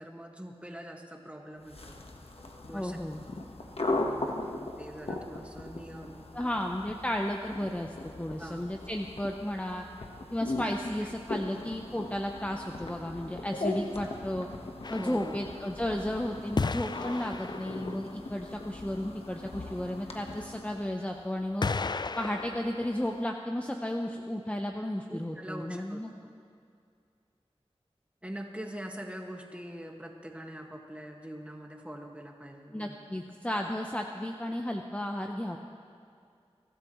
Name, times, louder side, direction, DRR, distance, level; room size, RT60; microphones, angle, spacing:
voice 1, 0.0-2.0 2.7-3.0 3.7-6.5 8.4-8.7 11.0-11.1 15.0-15.5 25.1-26.0 28.2-32.9, equal, 10° right, 1 dB, 1.8 m, -43 dB
sound 1, 1.6-20.9, left 2 dB, 65° left, 1.3 m, -39 dB
voice 2, 2.7-3.2 6.3-9.8 10.3-14.5 14.9-21.7 22.2-26.1 32.7-35.6, left 1 dB, 10° left, 2 dB, 0.8 m, -33 dB
sound 2, 14.8-16.0 16.6-18.1 20.4-20.5 21.6-23.2, left 4 dB, 40° left, 0.4 m, -35 dB
23.0 x 13.0 x 3.1 m, 2.4 s
wide cardioid pair, 40°, 11 cm